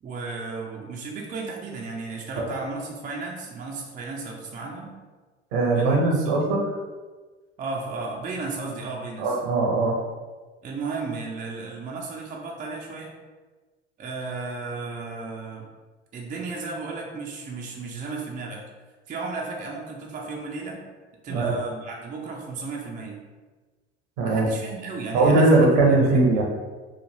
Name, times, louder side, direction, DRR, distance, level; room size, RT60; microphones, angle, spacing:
voice 1, 0.0-4.9 5.7-6.5 7.6-9.4 10.6-13.2 14.0-15.7 16.1-18.6 19.1-20.8 21.2-23.2 24.2-25.7 26.0-26.2, right 3 dB, 25° right, -1 dB, 0.5 m, -34 dB
voice 2, 5.5-6.6 9.2-10.0 21.3-21.5 24.2-24.5 25.1-26.4, right 2 dB, 65° right, -1 dB, 0.8 m, -20 dB
3.2 x 2.4 x 2.6 m, 1.3 s
figure-of-eight pair, 65°, 34 cm